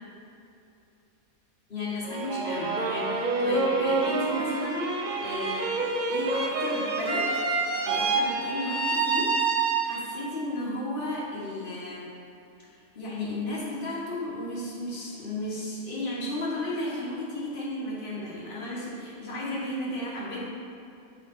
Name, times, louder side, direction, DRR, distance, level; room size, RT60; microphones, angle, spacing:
voice 1, 1.7-5.8 6.1-7.3 7.8-12.1 12.9-20.5, left 1 dB, 40° left, -8 dB, 1.6 m, -34 dB
sound 1, 2.0-10.3, right 3 dB, 55° right, 0.5 m, -27 dB
8.6 x 3.9 x 3.8 m, 2.7 s
omnidirectional pair, 1.5 m